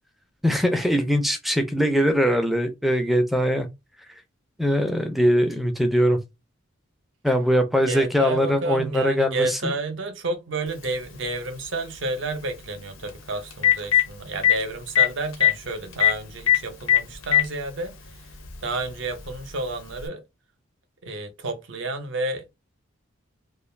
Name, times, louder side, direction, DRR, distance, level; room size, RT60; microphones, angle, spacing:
voice 1, 0.4-3.7 4.6-6.2 7.2-9.7, equal, ahead, 0.4 m, -21 dB
voice 2, 7.8-17.9 18.6-20.2 21.0-22.4, right 2 dB, 60° right, 0.7 m, -30 dB
Telephone, 10.8-10.9 13.1-13.2 13.5-14.0 14.4-14.5 15.0-15.1 15.3-15.5 16.0-16.1 16.5-16.6 16.9-17.5 18.4-18.5 20.0-20.1, left 12 dB, 75° left, 0.6 m, -17 dB
2.3 x 2.3 x 3.2 m
head